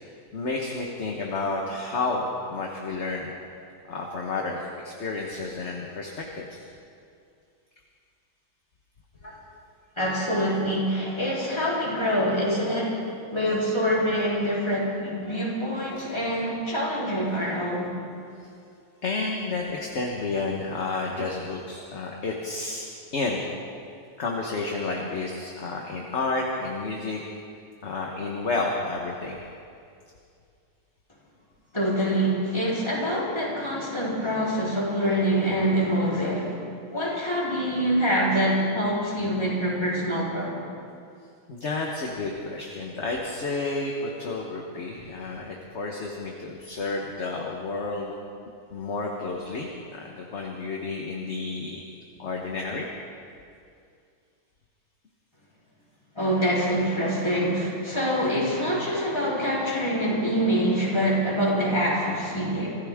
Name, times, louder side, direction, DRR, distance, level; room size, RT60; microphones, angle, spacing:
voice 1, 0.3-3.3 3.9-6.6 18.4-18.5 19.0-22.8 23.1-23.5 24.2-27.2 27.8-29.4 41.5-48.1 48.7-51.8 52.2-52.9, left 3 dB, 40° left, 0 dB, 1.4 m, -31 dB
voice 2, 10.0-13.0 13.3-18.0 31.7-36.5 36.9-40.5 56.2-62.7, equal, 15° left, -6 dB, 3.8 m, -25 dB
25.0 x 15.0 x 3.6 m, 2.4 s
omnidirectional pair, 2.0 m